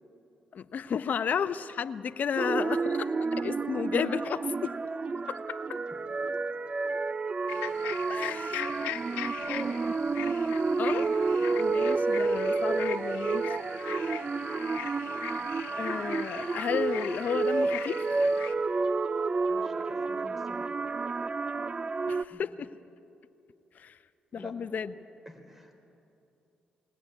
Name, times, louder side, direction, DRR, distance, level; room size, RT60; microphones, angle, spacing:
voice 1, 0.5-4.7 5.3-5.8 8.1-8.7 10.8-11.1 11.6-13.5 15.8-18.0 22.1-22.7 23.8-24.0 24.3-24.9, left 7 dB, 55° left, 13 dB, 0.7 m, -33 dB
sound 1, 2.4-22.2, right 4 dB, 35° right, 0.5 m, -30 dB
sound 2, 7.5-18.5, left 12 dB, 90° left, 1.0 m, -41 dB
voice 2, 9.4-9.8 19.5-20.8 22.3-22.7 24.3-24.6 25.3-25.8, equal, 5° right, 6 dB, 4.0 m, -46 dB
20.5 x 18.5 x 9.2 m, 2.7 s
supercardioid pair, 60°, 3 cm